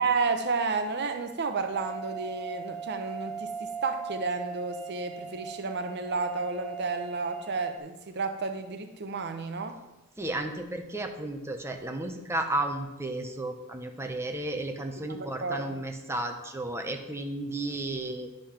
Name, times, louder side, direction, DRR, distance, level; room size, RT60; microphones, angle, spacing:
voice 1, 0.0-9.8 15.1-15.7, right 4 dB, 50° right, 7 dB, 0.7 m, -31 dB
sound 1, 1.7-7.8, right 5 dB, 30° right, 2.9 m, -39 dB
voice 2, 10.2-18.3, right 2 dB, 10° right, 4 dB, 0.8 m, -33 dB
10.5 x 5.4 x 5.8 m, 1.0 s
head